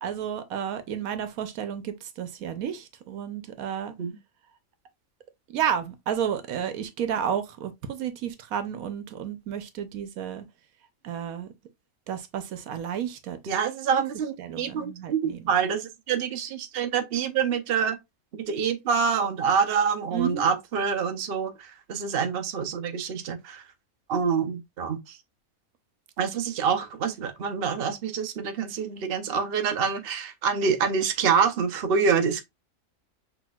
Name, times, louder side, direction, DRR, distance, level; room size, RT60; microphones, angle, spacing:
voice 1, 0.0-3.9 5.5-10.4 11.0-11.5 12.1-13.5 13.9-14.0 14.4-15.5 20.1-20.5, right 9 dB, 90° right, 1.2 m, -32 dB
voice 2, 13.5-18.0 18.4-21.5 21.9-23.6 24.1-25.2 26.2-32.4, right 6 dB, 50° right, 0.9 m, -26 dB
6.1 x 3.4 x 2.3 m
omnidirectional pair, 1.4 m